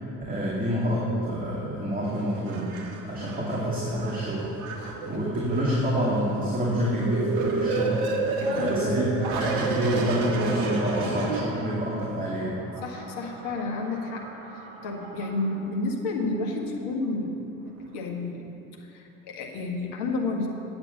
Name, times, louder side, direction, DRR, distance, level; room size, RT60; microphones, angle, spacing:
voice 1, 0.3-2.7 3.1-4.5 4.8-8.1 8.5-12.6, equal, 20° right, -7 dB, 2.4 m, -27 dB
sound 1, 2.1-12.0 12.6-15.6 16.2-16.3, right 3 dB, 60° right, 1.4 m, -32 dB
voice 2, 4.8-5.2 8.4-9.2 12.8-17.4 17.9-18.4 18.8-20.5, left 2 dB, 60° left, 0 dB, 1.8 m, -31 dB
8.9 x 8.4 x 6.9 m, 2.9 s
figure-of-eight pair, 60°, 44 cm